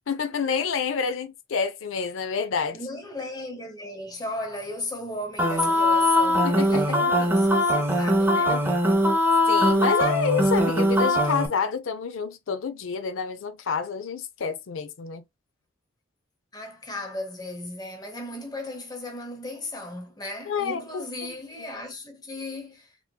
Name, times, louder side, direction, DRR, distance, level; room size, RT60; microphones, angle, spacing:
voice 1, 0.1-2.8 6.4-7.0 8.5-8.6 9.5-15.2 20.5-21.0, left 6 dB, 75° left, 0.4 m, -28 dB
voice 2, 2.7-8.7 16.5-22.9, left 1 dB, 20° left, 0.8 m, -36 dB
sound 1, 5.4-11.5, left 1 dB, 10° right, 0.6 m, -21 dB
3.6 x 3.0 x 2.2 m
head